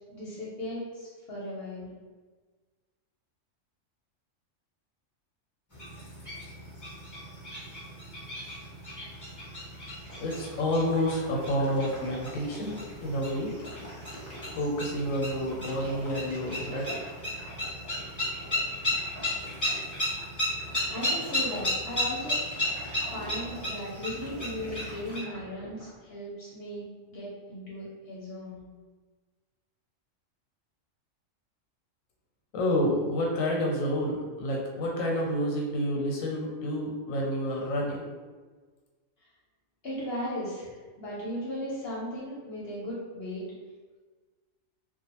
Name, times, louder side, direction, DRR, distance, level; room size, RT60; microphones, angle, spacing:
voice 1, 0.1-1.9 20.9-22.4 23.0-28.6 39.8-43.4, left 1 dB, 60° left, -7 dB, 0.7 m, -37 dB
sound 1, 5.7-25.2, left 1 dB, 30° left, 0.3 m, -35 dB
sound 2, 10.0-26.0, equal, 15° right, 0.6 m, -45 dB
voice 2, 10.2-13.5 14.6-16.9 32.5-38.1, equal, 90° left, -1 dB, 1.0 m, -29 dB
2.4 x 2.2 x 2.8 m, 1.4 s
omnidirectional pair, 1.4 m